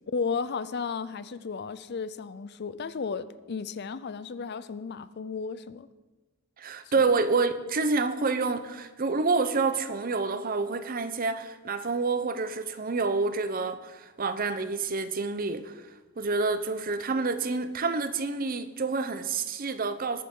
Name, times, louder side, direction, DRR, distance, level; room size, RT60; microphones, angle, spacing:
voice 1, 0.1-5.9 7.0-7.1, left 5 dB, 50° left, 0.5 m, -34 dB
voice 2, 6.6-15.8 16.2-20.2, right 4 dB, 40° right, 0.7 m, -28 dB
20.5 x 9.4 x 3.8 m
head